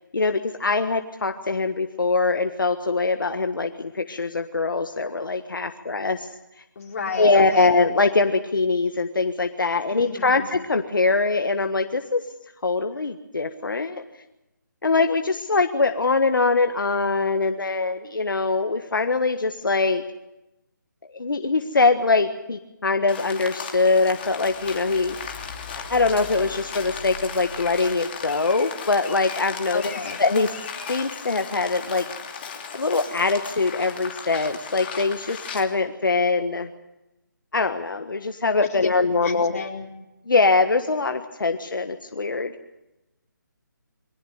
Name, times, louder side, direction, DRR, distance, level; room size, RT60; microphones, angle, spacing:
voice 1, 0.1-6.3 7.2-12.2 12.6-14.0 14.8-20.0 21.1-25.2 25.7-29.9 30.2-30.5 30.9-32.1 32.7-36.7 37.5-39.6 40.3-42.5, left 3 dB, 85° left, 7 dB, 1.5 m, -23 dB
voice 2, 6.7-7.8 9.9-10.5 29.7-30.2 38.6-38.9 39.2-39.9, left 4 dB, 45° left, 0 dB, 4.5 m, -32 dB
Rain, 23.1-35.6, left 6 dB, 30° left, 2.8 m, -36 dB
sound 1, 24.2-28.4, left 4 dB, 10° left, 3.2 m, -43 dB
23.5 x 17.5 x 7.9 m, 0.96 s
hypercardioid pair, 165°, 11 cm